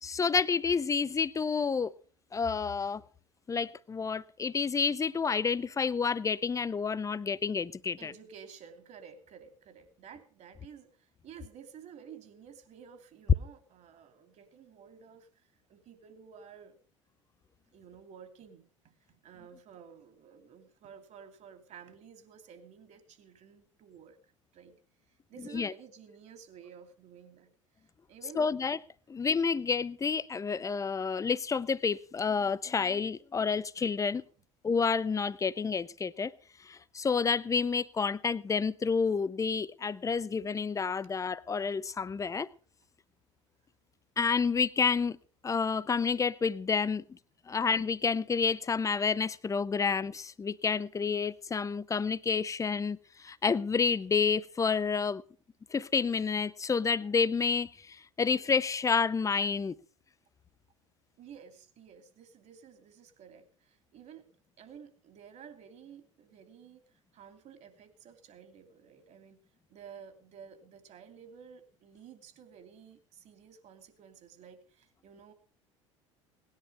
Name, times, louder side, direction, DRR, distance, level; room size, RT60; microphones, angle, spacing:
voice 1, 0.0-1.9 2.3-3.0 3.5-8.1 25.5-25.7 28.4-28.8 29.1-34.2 34.6-36.3 36.7-42.5 44.2-45.2 45.4-47.0 47.5-53.0 53.2-55.2 55.7-59.7, left 5 dB, 20° left, 0.7 m, -29 dB
voice 2, 8.0-16.8 17.7-24.7 25.1-27.5 27.7-28.5 61.2-64.3 64.6-66.8 67.1-69.4 69.7-75.3, right 7 dB, 45° right, 2.8 m, -52 dB
18.5 x 10.5 x 5.4 m
figure-of-eight pair, 65°, 16 cm